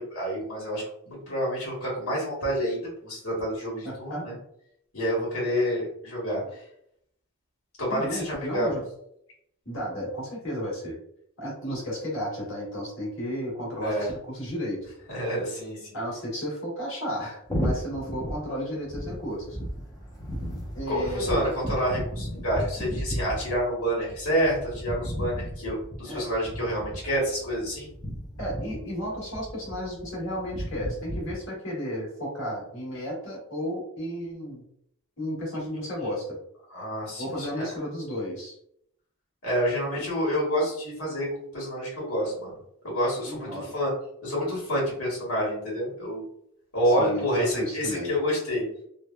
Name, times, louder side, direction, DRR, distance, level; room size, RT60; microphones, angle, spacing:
voice 1, 0.0-4.3 4.9-6.4 7.8-8.8 13.8-14.1 15.1-16.0 20.9-27.9 36.0-36.1 36.7-37.7 39.4-41.3 41.5-42.6 42.8-43.9 44.2-46.2 46.7-48.6, equal, 75° left, -5 dB, 1.3 m, -28 dB
voice 2, 3.8-4.3 7.9-8.8 9.6-11.0 11.4-14.8 15.9-19.6 20.7-21.5 26.0-26.2 28.4-34.6 35.2-36.4 37.2-38.6 43.2-43.7 46.8-48.1, equal, 55° left, -5 dB, 1.3 m, -33 dB
sound 1, 17.4-31.4, equal, 15° left, 0.5 m, -35 dB
3.1 x 2.1 x 2.3 m, 0.72 s
head